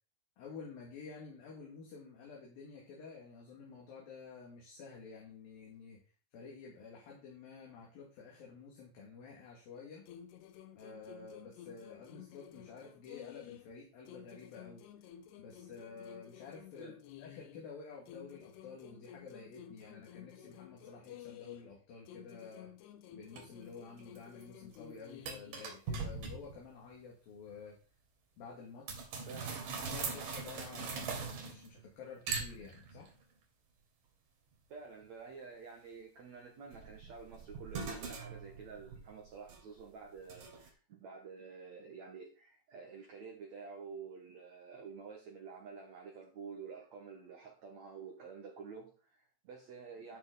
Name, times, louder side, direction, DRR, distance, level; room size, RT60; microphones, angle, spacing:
voice 1, 0.4-6.0 6.3-10.0 10.8-14.8 15.4-22.7 23.1-27.8 28.4-29.1 29.8-33.1, left 5 dB, 55° left, 3.6 m, -51 dB
sound 1, 10.1-13.8 14.1-17.7 18.1-21.8 22.1-25.7, left 11 dB, 75° left, 2.6 m, -53 dB
sound 2, 23.4-23.5 24.0-24.4 24.7-24.8 25.3-26.6 28.9-31.8 32.3-33.1 36.7-39.8 40.3-40.7, right 5 dB, 50° right, 3.3 m, -41 dB
voice 2, 29.3-29.7 34.7-50.2, right 5 dB, 80° right, 1.6 m, -50 dB
12.0 x 6.2 x 4.0 m
omnidirectional pair, 5.5 m